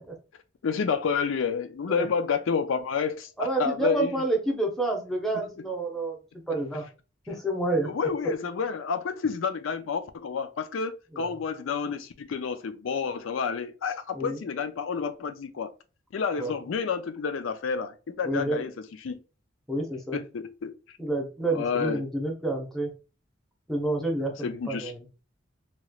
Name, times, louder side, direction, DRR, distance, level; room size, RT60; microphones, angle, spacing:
voice 1, 0.6-4.2 7.8-15.7 16.1-18.7 19.0-19.2 20.1-20.7 21.5-22.0 24.4-24.9, left 6 dB, 80° left, 0.4 m, -29 dB
voice 2, 3.4-6.2 6.5-6.8 7.3-7.9 11.1-11.3 11.8-11.9 14.1-14.4 16.4-16.6 18.2-18.6 19.7-20.2 21.0-22.9 23.7-25.0, right 2 dB, ahead, 0.8 m, -29 dB
3.1 x 2.9 x 2.3 m
head